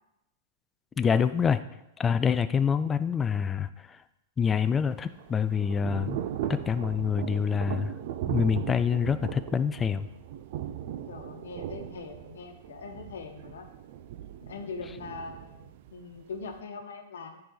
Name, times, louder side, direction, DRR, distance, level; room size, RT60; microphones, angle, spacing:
voice 1, 1.0-1.6 2.0-3.7 4.4-6.2 6.5-7.9 8.3-10.1, left 6 dB, 15° left, 12 dB, 0.3 m, -26 dB
Thunder / Rain, 4.7-16.6, right 10 dB, 55° right, 0.4 m, -38 dB
voice 2, 11.0-13.7 14.4-17.4, left 4 dB, 85° left, 6 dB, 1.0 m, -41 dB
9.3 x 4.2 x 3.9 m, 0.88 s
hypercardioid pair, 145°, 0 cm